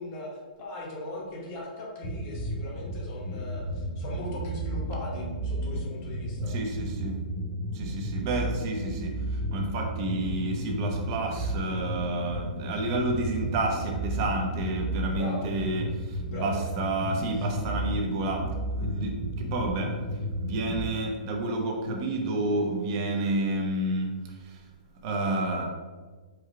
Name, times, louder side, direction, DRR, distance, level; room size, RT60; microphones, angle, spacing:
voice 1, 0.0-6.5 15.2-15.5 16.3-16.6 17.4-17.5, left 1 dB, 25° left, -2 dB, 1.0 m, -39 dB
sound 1, 2.0-20.8, right 1 dB, 60° left, 1.4 m, -33 dB
voice 2, 6.5-7.2 7.7-20.0 20.4-24.6 25.0-25.6, right 2 dB, 30° right, 2 dB, 0.6 m, -30 dB
4.6 x 2.3 x 4.7 m, 1.4 s
hypercardioid pair, 170°, 5 cm